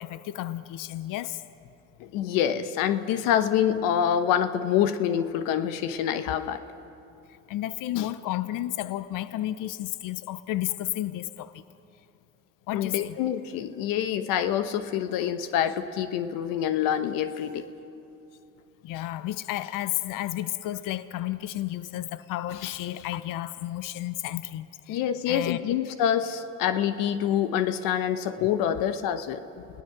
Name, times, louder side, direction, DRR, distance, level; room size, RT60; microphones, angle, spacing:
voice 1, 0.0-1.4 6.3-6.4 7.5-11.6 12.7-13.2 18.8-25.8 28.4-28.5 29.6-29.7, left 14 dB, 70° left, 0.8 m, -32 dB
voice 2, 2.0-6.6 12.7-17.6 24.9-29.4, left 9 dB, 85° left, 1.1 m, -26 dB
29.0 x 18.5 x 6.0 m
cardioid pair, 95°, 33 cm